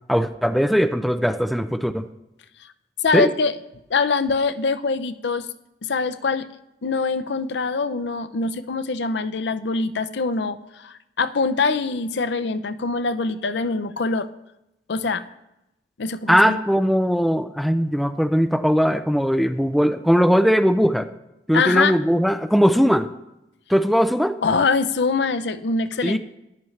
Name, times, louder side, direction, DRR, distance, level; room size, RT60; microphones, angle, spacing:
voice 1, 0.1-2.0 3.1-3.3 16.3-21.1 21.5-23.1 23.7-24.4 26.0-26.2, equal, ahead, 8 dB, 0.4 m, -19 dB
voice 2, 3.0-3.5 3.9-5.5 5.8-6.5 6.8-14.3 14.9-15.2 16.0-16.6 21.5-21.9 24.4-26.2, left 4 dB, 80° left, 13 dB, 0.6 m, -23 dB
14.0 x 11.0 x 3.2 m, 0.89 s
head